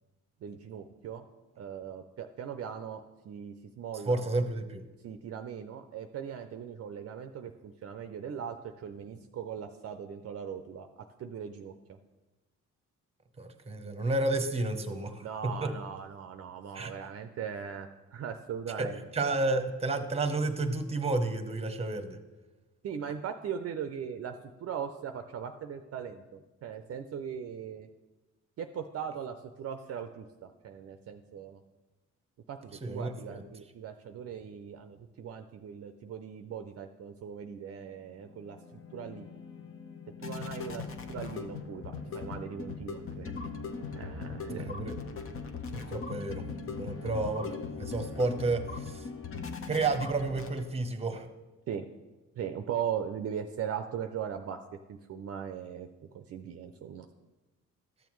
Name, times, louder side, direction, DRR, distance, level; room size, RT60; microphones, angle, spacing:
voice 1, 0.4-1.2 1.6-4.2 5.0-12.0 15.2-19.0 22.8-24.3 24.6-27.9 28.6-31.6 32.5-39.3 40.2-43.3 43.9-44.8 51.7-51.8 52.4-54.6 54.9-55.9 56.1-57.1, right 8 dB, 50° right, 7 dB, 0.5 m, -39 dB
voice 2, 4.1-4.8 13.4-15.7 16.7-16.9 18.8-22.2 32.8-33.1 44.5-45.0 45.7-49.1 49.7-51.3, right 2 dB, 20° right, 8 dB, 0.9 m, -31 dB
sound 1, 38.1-50.9, left 5 dB, 45° left, 0.8 m, -40 dB
13.5 x 7.0 x 3.1 m, 1.1 s
cardioid pair, 90°, 30 cm